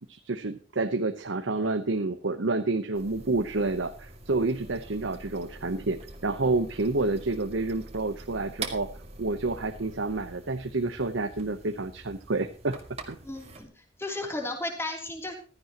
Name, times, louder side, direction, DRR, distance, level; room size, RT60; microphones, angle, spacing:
voice 1, 0.1-8.9 9.2-12.8 13.1-13.2, right 3 dB, 80° right, 8 dB, 0.9 m, -29 dB
sound 1, 2.9-13.6, right 3 dB, 35° right, 2.1 m, -44 dB
voice 2, 13.2-13.7 14.0-15.3, left 2 dB, 15° left, 2 dB, 3.1 m, -34 dB
15.5 x 13.5 x 2.9 m, 0.37 s
head